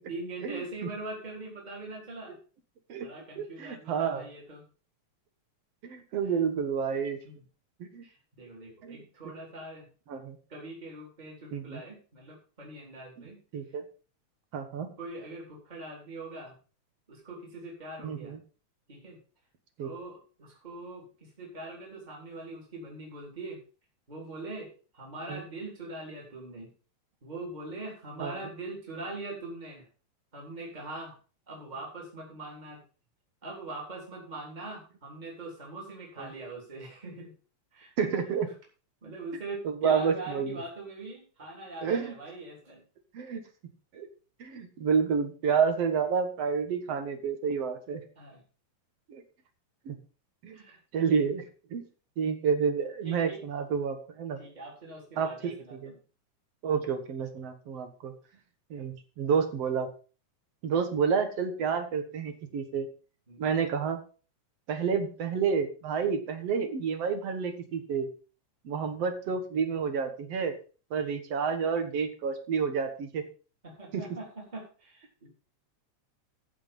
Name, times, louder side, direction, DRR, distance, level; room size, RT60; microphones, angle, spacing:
voice 1, 0.1-2.4 3.0-4.7 7.2-7.4 8.0-9.9 10.5-13.4 15.0-16.6 17.1-18.3 18.9-19.2 19.8-23.6 24.1-26.7 27.2-29.9 30.3-31.1 31.5-32.8 33.4-37.3 37.7-37.9 39.0-42.8 48.2-48.4 50.5-51.1 53.0-53.4 54.4-56.0 63.3-63.5 73.6-75.3, right 2 dB, 15° right, -2 dB, 3.4 m, -42 dB
voice 2, 3.4-4.2 5.8-7.2 7.8-8.0 8.8-9.0 10.1-10.4 11.5-11.8 13.5-13.8 14.5-14.9 18.0-18.4 19.8-19.9 25.3-25.4 28.2-28.4 38.0-38.5 39.7-40.6 41.8-42.1 43.1-43.4 43.9-44.1 44.4-48.0 49.1-49.2 49.9-50.0 50.4-50.6 50.9-51.4 51.7-51.8 52.2-54.4 55.2-55.9 56.6-58.1 58.7-59.9 60.6-62.9 63.4-64.0 64.7-68.1 68.7-70.5 70.9-73.2 73.9-74.1, right 6 dB, 60° right, 8 dB, 2.3 m, -29 dB
14.5 x 5.6 x 5.5 m, 0.37 s
omnidirectional pair, 3.3 m